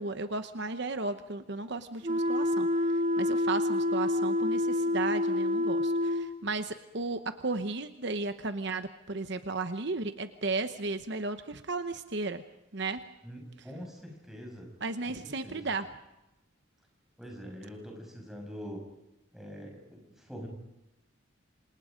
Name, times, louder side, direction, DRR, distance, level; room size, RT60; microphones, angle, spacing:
voice 1, 0.0-12.4 12.7-13.0 14.8-15.9, right 3 dB, 55° right, 9 dB, 1.0 m, -34 dB
sound 1, 2.0-6.3, left 1 dB, 40° right, 2.4 m, -27 dB
voice 2, 13.2-14.7 15.0-15.6 17.2-18.8 19.3-20.5, equal, ahead, 1 dB, 6.4 m, -44 dB
28.0 x 27.0 x 5.2 m, 0.95 s
head